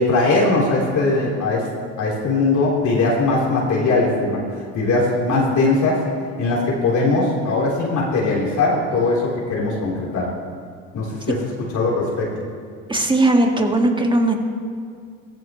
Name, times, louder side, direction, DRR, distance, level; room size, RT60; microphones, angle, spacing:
voice 1, 0.0-1.7 2.0-4.4 4.7-6.0 6.4-10.3 10.9-11.4 11.7-12.3, left 3 dB, 55° left, -5 dB, 3.6 m, -20 dB
voice 2, 12.9-14.4, right 2 dB, 15° right, 3 dB, 1.8 m, -18 dB
17.0 x 14.5 x 3.1 m, 2.1 s
supercardioid pair, 75°, 36 cm